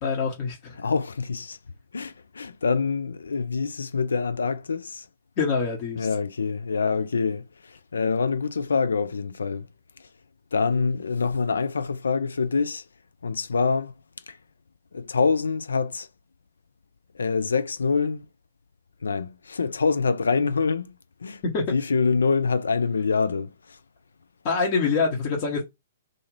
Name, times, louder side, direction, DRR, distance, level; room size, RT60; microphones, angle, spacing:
voice 1, 0.0-0.8 5.4-6.1 21.5-21.6 24.4-25.6, left 5 dB, 35° left, 1.0 m, -25 dB
voice 2, 0.8-1.6 1.9-5.1 6.0-9.7 10.5-12.8 13.2-13.9 14.3-14.4 14.9-16.1 17.1-18.3 19.0-21.4 21.7-23.8, left 5 dB, 70° left, 0.3 m, -25 dB
2.5 x 2.4 x 3.1 m
figure-of-eight pair, 120°, 0 cm